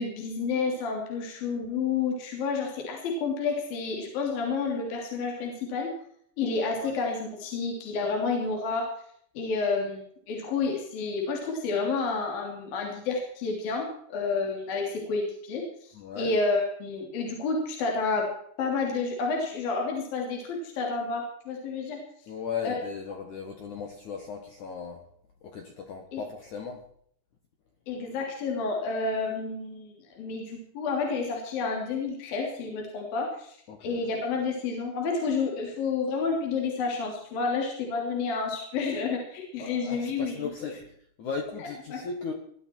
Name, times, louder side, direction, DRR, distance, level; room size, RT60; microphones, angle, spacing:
voice 1, 0.0-5.9 6.4-8.9 9.3-18.3 18.6-22.0 22.6-22.8 26.1-26.2 27.9-40.4 41.9-42.0, left 4 dB, 50° left, 0 dB, 4.4 m, -30 dB
voice 2, 15.9-16.3 22.3-25.0 25.4-26.9 33.7-34.1 39.6-40.8 41.2-42.3, left 6 dB, 65° left, 3 dB, 1.9 m, -37 dB
20.0 x 12.5 x 4.5 m, 0.65 s
omnidirectional pair, 5.7 m